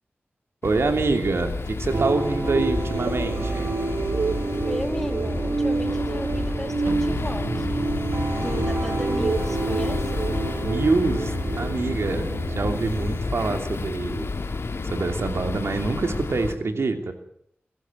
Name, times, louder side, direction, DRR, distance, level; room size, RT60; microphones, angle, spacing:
sound 1, 0.6-16.6, left 3 dB, 80° left, 1.9 m, -31 dB
voice 1, 0.6-3.7 10.6-12.3 12.5-14.3 14.8-17.1, right 3 dB, 90° right, 6 dB, 2.9 m, -25 dB
sound 2, 1.9-13.2, right 3 dB, 70° right, 2.3 m, -27 dB
voice 2, 4.7-7.9 8.3-10.2, equal, 10° left, 5 dB, 3.3 m, -35 dB
24.0 x 14.0 x 9.5 m, 0.70 s
wide cardioid pair, 85°, 4 cm